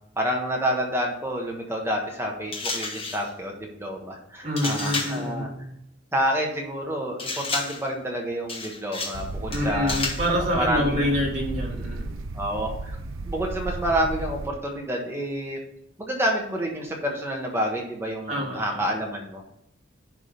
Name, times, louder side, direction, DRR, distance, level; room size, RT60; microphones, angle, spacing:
voice 1, 0.2-5.5 6.1-9.9 10.5-11.1 12.3-13.0 13.2-15.6 16.0-19.4, equal, 15° right, -1 dB, 1.3 m, -28 dB
sound 1, 2.5-3.3 4.6-5.3 7.2-7.9 8.5-9.2 9.5-10.3, left 3 dB, 30° left, 1.4 m, -31 dB
voice 2, 4.4-5.7 9.5-12.1 18.3-18.8, equal, 35° right, -4 dB, 2.7 m, -27 dB
sound 2, 9.1-14.5, right 2 dB, 90° right, 0.6 m, -33 dB
10.5 x 3.8 x 5.2 m, 0.79 s
head